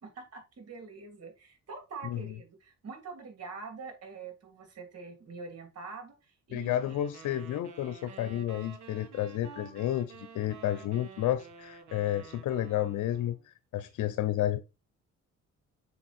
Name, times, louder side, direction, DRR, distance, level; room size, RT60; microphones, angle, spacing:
voice 1, 0.0-6.8 8.0-8.2, right 4 dB, 55° right, 3.0 m, -45 dB
voice 2, 6.5-13.3 13.7-14.6, left 12 dB, 75° left, 0.8 m, -31 dB
sound 1, 6.6-13.4, right 6 dB, 70° right, 1.9 m, -50 dB
6.9 x 5.4 x 4.2 m
cardioid pair, 90°, 30 cm